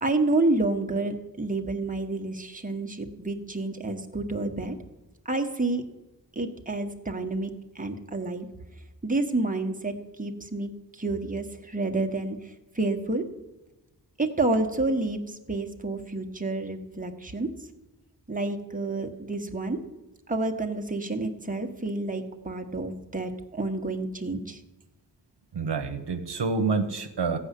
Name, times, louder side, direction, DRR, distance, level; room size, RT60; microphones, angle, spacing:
voice 1, 0.0-4.7 5.2-5.8 6.3-8.5 9.0-13.2 14.2-17.5 18.3-19.8 20.3-24.6, right 2 dB, 20° right, 4 dB, 1.4 m, -29 dB
voice 2, 25.5-27.4, right 4 dB, 70° right, 7 dB, 1.1 m, -27 dB
15.0 x 5.6 x 8.4 m, 1.0 s
cardioid pair, 60°, 43 cm